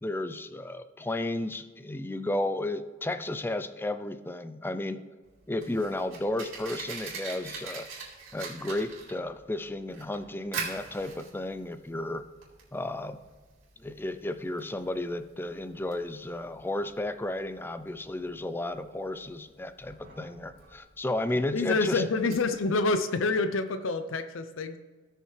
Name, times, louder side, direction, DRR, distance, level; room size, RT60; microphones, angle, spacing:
voice 1, 0.0-5.0 5.5-7.9 8.3-12.3 12.7-13.2 13.8-22.0, left 1 dB, 10° left, 11 dB, 0.4 m, -33 dB
Fire, 5.2-22.9, right 5 dB, 90° right, 3.5 m, -44 dB
voice 2, 21.5-24.8, left 3 dB, 75° left, 10 dB, 0.6 m, -27 dB
17.5 x 6.6 x 3.3 m, 1.4 s
head